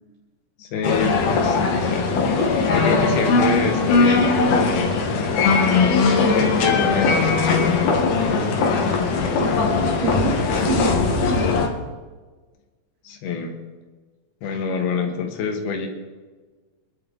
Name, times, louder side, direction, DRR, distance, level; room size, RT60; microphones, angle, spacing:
voice 1, 0.6-2.1 2.7-5.1 6.3-8.0 13.1-13.5 14.4-15.9, left 5 dB, 85° left, 3 dB, 3.6 m, -26 dB
sound 1, 0.8-11.7, left 4 dB, 60° left, 2.7 m, -19 dB
voice 2, 9.4-11.6, right 4 dB, 85° right, -5 dB, 4.6 m, -28 dB
25.5 x 11.0 x 4.0 m, 1.3 s
omnidirectional pair, 4.4 m